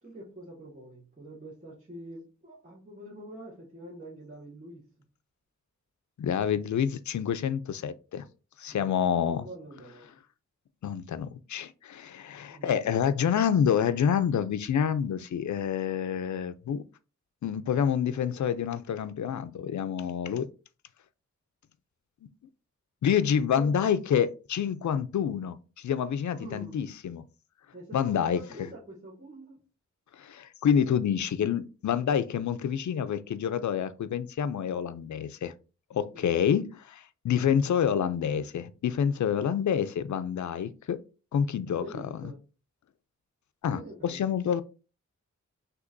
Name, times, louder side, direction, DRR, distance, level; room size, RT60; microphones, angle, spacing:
voice 1, 0.0-4.8 8.7-10.1 12.5-12.7 23.1-23.7 26.3-26.9 27.7-29.6 36.1-36.4 41.7-42.4 43.7-44.2, right 1 dB, 25° right, 1.5 m, -45 dB
voice 2, 6.2-8.2 8.6-9.4 10.8-16.8 17.4-20.5 23.0-27.2 27.9-28.4 30.2-35.5 35.9-41.0 41.3-41.8 43.6-44.6, left 8 dB, 75° left, 0.5 m, -28 dB
6.1 x 2.9 x 2.6 m
wide cardioid pair, 100°, 30 cm